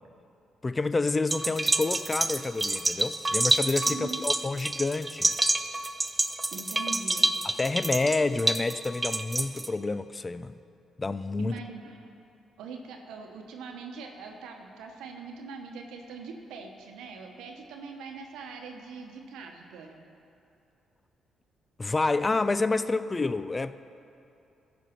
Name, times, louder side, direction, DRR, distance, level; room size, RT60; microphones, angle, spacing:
voice 1, 0.6-5.4 7.6-10.6 11.0-11.6 21.8-23.7, left 3 dB, 30° left, 14 dB, 0.4 m, -28 dB
sound 1, 1.3-9.7, right 2 dB, 15° right, 0.6 m, -28 dB
voice 2, 3.9-4.2 6.5-7.3 11.4-12.1 12.6-20.1, right 4 dB, 80° right, 3 dB, 1.0 m, -42 dB
14.0 x 5.2 x 5.8 m, 2.7 s
supercardioid pair, 55°, 0 cm